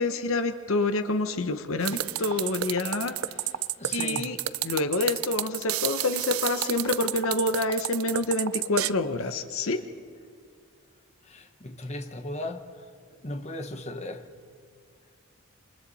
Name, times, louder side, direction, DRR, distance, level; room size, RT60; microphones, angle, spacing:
voice 1, 0.0-3.1 3.9-4.4 4.6-9.8, left 2 dB, 65° left, 1.0 m, -27 dB
sound 1, 1.8-8.9, right 13 dB, 70° right, 0.5 m, -30 dB
voice 2, 3.8-4.3 11.3-12.6 13.2-14.2, left 1 dB, 30° left, 1.1 m, -36 dB
28.0 x 25.0 x 4.2 m
head